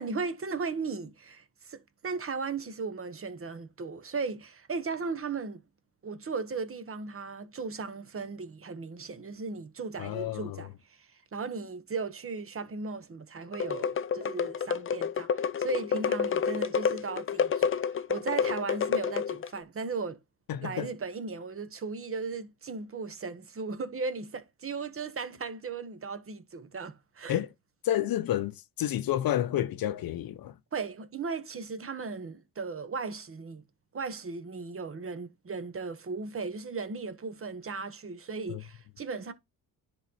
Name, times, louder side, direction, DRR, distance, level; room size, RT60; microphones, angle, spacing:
voice 1, 0.0-5.6 6.0-20.2 20.6-27.4 30.7-33.6 33.9-39.3, right 4 dB, 35° right, 1.2 m, -36 dB
voice 2, 10.0-10.6 20.5-20.9 27.3-27.5 27.8-30.5 38.5-38.6, left 12 dB, 60° left, 0.8 m, -30 dB
sound 1, 13.5-19.6, left 7 dB, 35° left, 0.5 m, -29 dB
10.5 x 3.9 x 4.1 m
cardioid pair, 100°, 39 cm